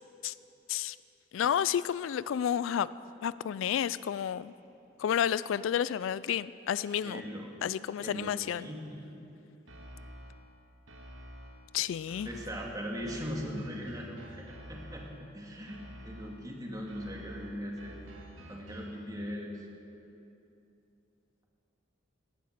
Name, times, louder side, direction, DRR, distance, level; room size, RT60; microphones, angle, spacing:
voice 1, 1.3-2.9 3.2-4.5 5.0-7.2 7.6-8.7 11.7-12.3, left 9 dB, 70° left, 17 dB, 0.3 m, -30 dB
voice 2, 6.9-7.5 8.0-9.2 12.3-15.1 15.3-18.0 18.5-19.5, equal, 20° right, -1 dB, 2.0 m, -40 dB
sound 1, 9.7-10.5 10.9-11.7 12.1-15.3 15.7-16.5 16.9-19.1, equal, 75° right, 1.9 m, -49 dB
18.0 x 11.0 x 6.6 m, 2.8 s
head